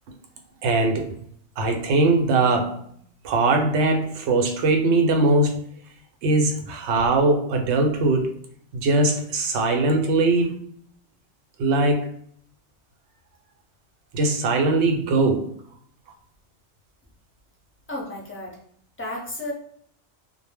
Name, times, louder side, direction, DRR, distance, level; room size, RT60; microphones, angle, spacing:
voice 1, 0.6-1.1 1.6-2.8 3.2-5.6 6.2-8.4 8.7-10.6 11.6-12.1 14.1-15.5, right 2 dB, 80° right, 4 dB, 0.9 m, -21 dB
voice 2, 17.9-18.6 19.0-19.5, left 1 dB, 15° left, -3 dB, 0.4 m, -32 dB
2.1 x 2.0 x 3.3 m, 0.62 s
omnidirectional pair, 1.2 m